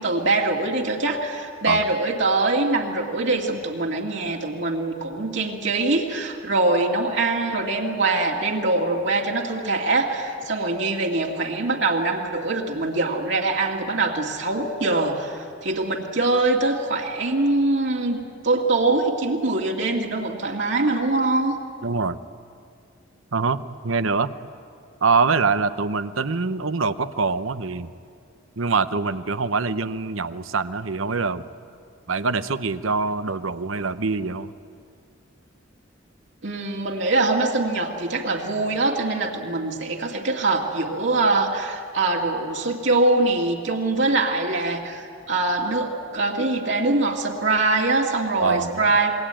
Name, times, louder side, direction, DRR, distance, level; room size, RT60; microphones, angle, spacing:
voice 1, 0.0-21.5 36.4-49.1, right 2 dB, 60° right, -1 dB, 2.3 m, -23 dB
voice 2, 21.8-22.2 23.3-24.3 25.0-27.9 28.6-31.5 32.1-34.5 48.4-48.8, right 4 dB, 80° right, 12 dB, 0.9 m, -24 dB
27.5 x 21.5 x 9.0 m, 2.3 s
head